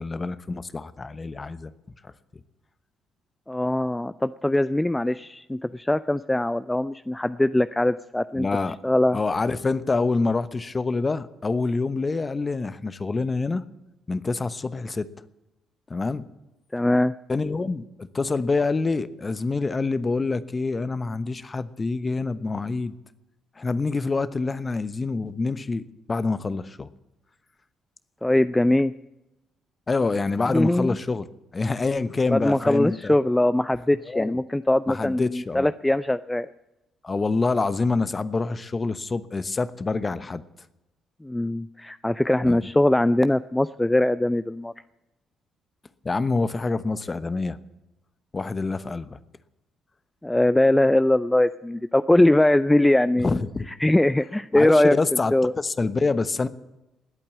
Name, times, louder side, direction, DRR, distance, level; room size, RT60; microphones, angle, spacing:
voice 1, 0.0-1.7 2.0-2.1 8.4-8.8 9.1-13.7 14.1-15.1 15.9-16.3 17.3-22.9 23.6-25.8 26.1-26.9 29.9-31.3 31.5-33.1 34.1-34.4 34.9-35.7 37.0-40.4 42.4-42.7 46.0-47.6 48.3-49.2 53.2-53.7 54.5-56.5, left 3 dB, 30° left, 14 dB, 1.0 m, -26 dB
voice 2, 3.5-8.5 8.8-9.2 16.7-17.1 28.2-28.9 30.5-31.0 32.3-36.5 41.2-44.7 50.2-55.5, left 1 dB, 10° left, 14 dB, 0.4 m, -21 dB
19.5 x 8.7 x 8.4 m, 0.96 s
hypercardioid pair, 45°, 0 cm